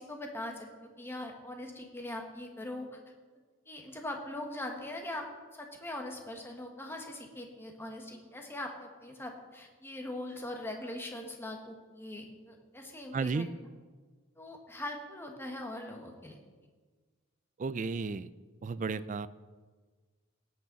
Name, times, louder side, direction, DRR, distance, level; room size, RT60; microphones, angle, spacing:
voice 1, 0.0-3.0 3.7-5.3 5.5-13.5 14.4-16.3, left 1 dB, 10° left, 2 dB, 1.5 m, -41 dB
voice 2, 13.1-13.5 17.6-18.3 18.6-19.3, right 4 dB, 40° right, 16 dB, 0.4 m, -33 dB
17.5 x 8.7 x 4.0 m, 1.4 s
head